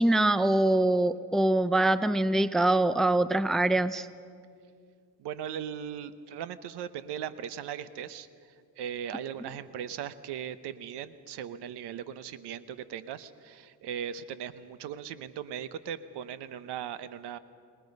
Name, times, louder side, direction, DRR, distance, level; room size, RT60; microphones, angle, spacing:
voice 1, 0.0-4.1, right 1 dB, ahead, 14 dB, 0.4 m, -24 dB
voice 2, 5.2-8.3 8.8-17.4, right 9 dB, 75° right, 14 dB, 1.0 m, -38 dB
29.0 x 20.0 x 5.4 m, 2.2 s
cardioid pair, 115°, 41 cm